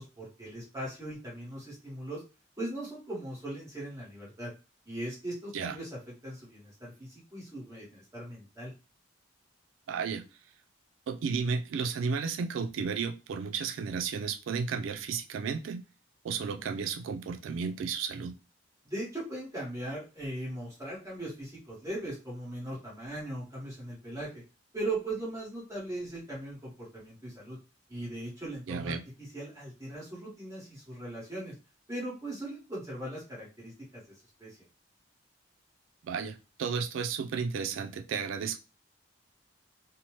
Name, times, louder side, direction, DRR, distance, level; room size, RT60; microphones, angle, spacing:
voice 1, 0.0-2.2 2.6-4.5 4.8-5.9 6.2-8.7 18.8-24.4 24.7-27.6 27.9-31.5 31.9-34.6, right 1 dB, 15° right, -6 dB, 1.2 m, -39 dB
voice 2, 9.9-10.2 11.1-15.8 16.2-18.4 28.7-29.0 36.0-38.6, right 5 dB, 85° right, 8 dB, 0.3 m, -33 dB
2.8 x 2.1 x 3.0 m, 0.30 s
head